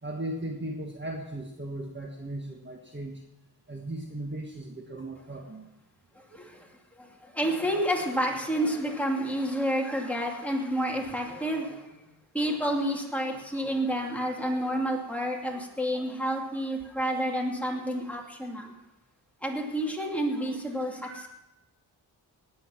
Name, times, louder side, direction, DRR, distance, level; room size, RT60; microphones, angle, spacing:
voice 1, 0.0-3.2 3.7-5.6, right 1 dB, 25° right, 1 dB, 1.6 m, -37 dB
voice 2, 6.3-6.7 7.0-12.0 12.3-18.7 19.4-21.3, equal, 5° left, -1 dB, 2.7 m, -29 dB
19.0 x 8.6 x 5.9 m, 0.95 s
wide cardioid pair, 95°, 42 cm